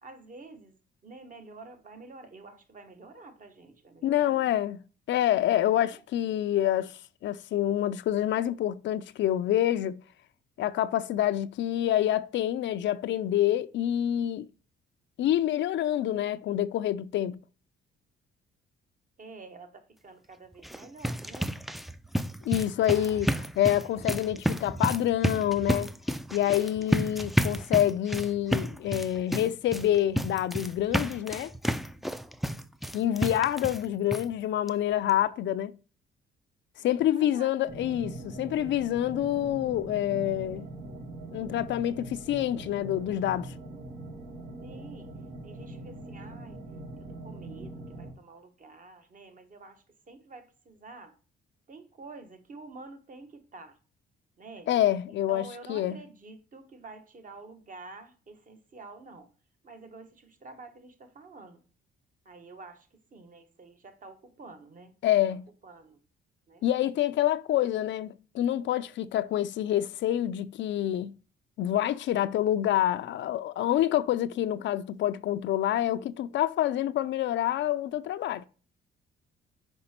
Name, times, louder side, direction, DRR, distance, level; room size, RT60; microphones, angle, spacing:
voice 1, 0.0-4.5 5.8-6.0 19.2-21.6 22.9-23.3 23.8-24.0 26.4-26.9 36.8-37.5 37.8-37.9 44.6-45.1 45.4-46.6 47.0-51.1 51.7-53.8 54.4-54.7 55.1-59.3 59.6-61.6 62.2-64.9 65.3-65.4 65.6-66.0 66.5-66.7, right 3 dB, 40° right, 1.3 m, -49 dB
voice 2, 4.0-4.8 5.1-10.0 10.6-14.5 15.2-17.4 22.4-23.3 23.6-25.9 26.3-31.5 32.9-35.7 36.8-40.7 41.3-43.5 54.7-56.0 65.0-65.4 66.6-71.1 71.6-78.5, left 12 dB, 70° left, 0.4 m, -27 dB
sound 1, 20.5-33.9 34.1-34.2 34.7-34.8 35.1-35.2, equal, ahead, 0.4 m, -31 dB
sound 2, 37.6-48.1, right 2 dB, 80° right, 1.6 m, -42 dB
5.3 x 4.8 x 4.3 m
cardioid pair, 90°, 20 cm